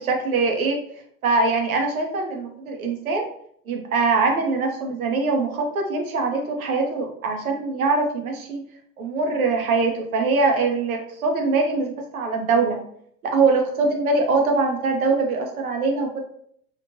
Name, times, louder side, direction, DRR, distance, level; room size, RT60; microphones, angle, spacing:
voice 1, 0.1-0.8 1.2-3.2 3.7-8.6 9.0-12.8 13.2-16.2, right 3 dB, 65° right, 3 dB, 0.8 m, -22 dB
3.0 x 2.5 x 2.6 m, 0.67 s
figure-of-eight pair, 90°, 46 cm